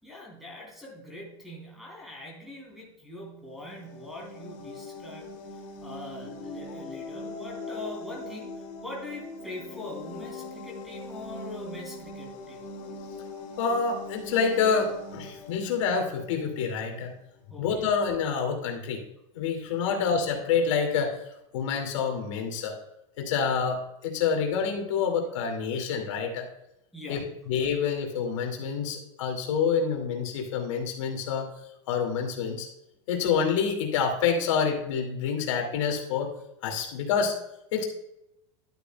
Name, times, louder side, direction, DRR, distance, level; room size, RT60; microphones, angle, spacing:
voice 1, 0.0-12.6 17.5-17.7 19.8-20.0 26.9-27.3, left 2 dB, ahead, -2 dB, 3.4 m, -42 dB
sound 1, 3.5-17.1, left 2 dB, 40° left, 1.8 m, -42 dB
voice 2, 13.6-17.1 17.6-19.0 19.3-21.2 21.5-22.8 23.2-26.5 27.1-31.5 31.9-32.7 33.1-36.3 36.6-37.3 37.7-37.8, left 6 dB, 80° left, 2 dB, 2.4 m, -27 dB
12.0 x 8.3 x 2.3 m, 0.84 s
supercardioid pair, 155°, 16 cm